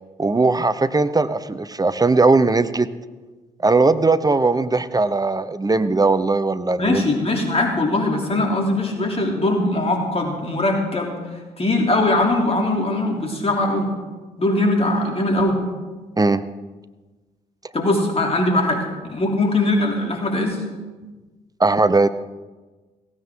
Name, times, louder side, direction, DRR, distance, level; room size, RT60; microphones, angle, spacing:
voice 1, 0.2-2.9 3.6-7.0 16.2-16.4 21.6-22.1, right 3 dB, 20° right, 13 dB, 0.8 m, -18 dB
voice 2, 6.8-11.2 11.6-13.9 14.4-15.6 17.7-20.6, left 2 dB, 30° left, 1 dB, 3.2 m, -21 dB
16.5 x 16.0 x 3.8 m, 1.2 s
hypercardioid pair, 45°, 21 cm